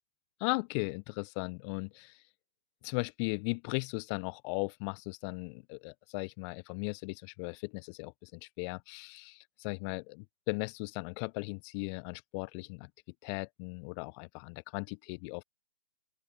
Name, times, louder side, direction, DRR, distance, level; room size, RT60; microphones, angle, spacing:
voice 1, 0.4-2.2 2.8-12.9 13.2-15.4, left 34 dB, 30° left, 4.5 m, -37 dB
open air
figure-of-eight pair, 130°, 30 cm